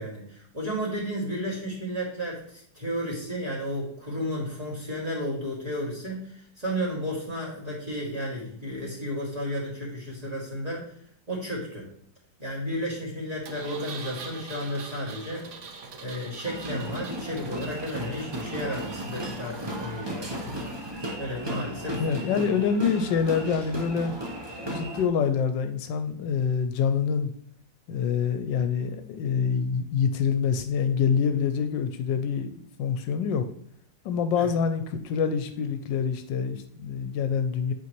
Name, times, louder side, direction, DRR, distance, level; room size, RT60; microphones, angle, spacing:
voice 1, 0.0-10.8 11.3-11.9 12.4-15.5 16.0-20.6 21.2-22.0 22.3-22.5 34.4-34.5, equal, 20° right, -6 dB, 2.3 m, -33 dB
Engine, 13.4-20.9, right 4 dB, 60° right, 0.8 m, -43 dB
sound 1, 16.4-25.1, right 1 dB, 40° right, 0.3 m, -35 dB
voice 2, 22.0-24.1 24.7-27.3 27.9-33.4 34.0-37.7, left 6 dB, 80° left, 9 dB, 1.2 m, -26 dB
8.3 x 4.6 x 3.0 m, 0.64 s
omnidirectional pair, 2.0 m